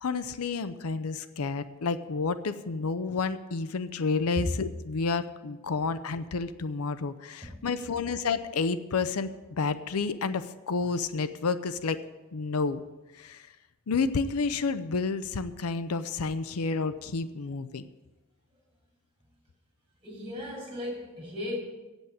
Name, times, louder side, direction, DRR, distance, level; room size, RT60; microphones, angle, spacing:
voice 1, 0.0-9.3 9.6-12.0 12.3-12.8 13.2-13.4 13.9-17.9, left 4 dB, 75° left, 12 dB, 0.6 m, -30 dB
voice 2, 20.0-21.6, left 1 dB, 25° right, -3 dB, 4.7 m, -35 dB
8.0 x 8.0 x 8.7 m, 1.1 s
head